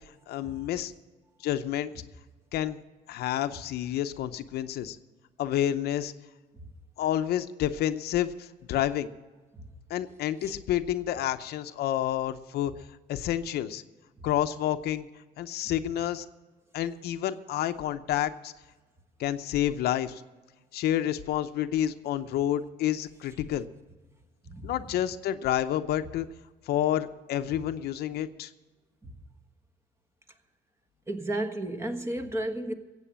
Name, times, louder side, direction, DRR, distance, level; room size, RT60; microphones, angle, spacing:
voice 1, 0.3-0.9 1.4-1.9 2.5-2.8 3.1-5.0 5.4-6.1 7.0-9.1 9.9-12.7 13.1-13.8 14.2-15.1 15.4-16.3 16.7-18.5 19.2-20.2 20.7-23.7 24.6-26.3 26.7-28.5, left 11 dB, 70° left, 10 dB, 0.7 m, -29 dB
voice 2, 31.1-32.7, right 1 dB, 15° right, 6 dB, 1.4 m, -33 dB
15.5 x 8.3 x 7.4 m, 1.3 s
cardioid pair, 110°, 17 cm